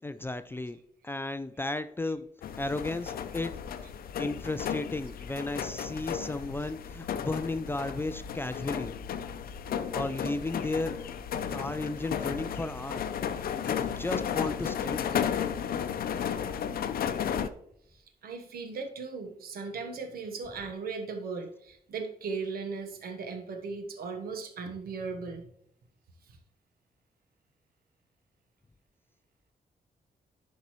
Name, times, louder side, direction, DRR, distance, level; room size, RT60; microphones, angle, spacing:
voice 1, 0.0-0.8 1.0-2.3 2.6-3.6 4.2-8.9 9.9-11.1 11.5-13.1 13.7-15.1, left 2 dB, 15° left, 12 dB, 0.4 m, -34 dB
sound 1, 2.4-17.5, left 8 dB, 80° left, 0.6 m, -34 dB
voice 2, 17.9-25.5 26.3-26.4, right 4 dB, 90° right, 6 dB, 1.2 m, -38 dB
10.5 x 5.4 x 3.1 m, 0.72 s
wide cardioid pair, 125°, 15 cm